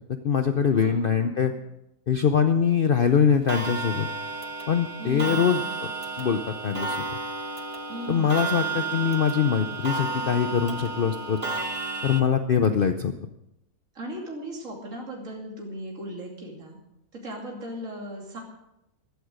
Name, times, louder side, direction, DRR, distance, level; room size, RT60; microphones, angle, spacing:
voice 1, 0.2-1.5 2.1-4.1 4.7-5.6 6.2-7.0 8.1-11.4 12.0-13.1, left 7 dB, 50° left, 8 dB, 0.8 m, -23 dB
voice 2, 0.8-1.6 5.0-5.6 7.9-8.4 13.9-16.8 17.1-18.4, equal, 60° right, -1 dB, 3.1 m, -37 dB
Clock, 3.5-12.2, right 3 dB, 25° right, 1.1 m, -32 dB
14.5 x 13.0 x 5.1 m, 0.87 s
omnidirectional pair, 1.5 m